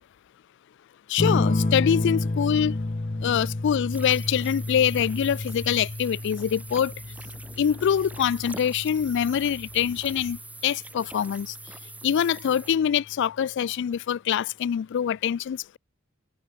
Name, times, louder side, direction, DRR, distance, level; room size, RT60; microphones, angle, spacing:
voice 1, 1.1-2.8 3.2-6.9 7.6-11.6 12.0-15.8, left 8 dB, 55° left, 0.3 m, -24 dB
sound 1, 1.2-10.3 11.7-12.3, left 2 dB, 30° left, 0.7 m, -30 dB
sound 2, 3.9-12.8, right 2 dB, 5° right, 1.3 m, -44 dB
sound 3, 9.0-10.4, left 1 dB, 85° left, 4.1 m, -50 dB
head